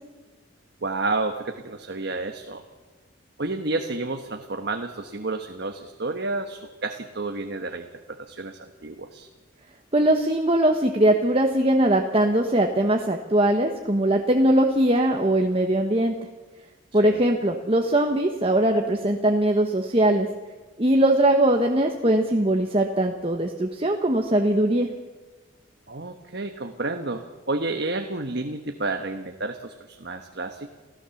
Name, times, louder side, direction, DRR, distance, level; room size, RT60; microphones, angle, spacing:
voice 1, 0.8-2.6 3.4-9.3 16.9-17.2 25.9-30.7, right 3 dB, 55° right, 5 dB, 1.3 m, -30 dB
voice 2, 9.9-16.2 16.9-20.3 20.8-24.9, right 1 dB, 30° right, 3 dB, 1.2 m, -21 dB
28.0 x 15.5 x 7.1 m, 1.3 s
head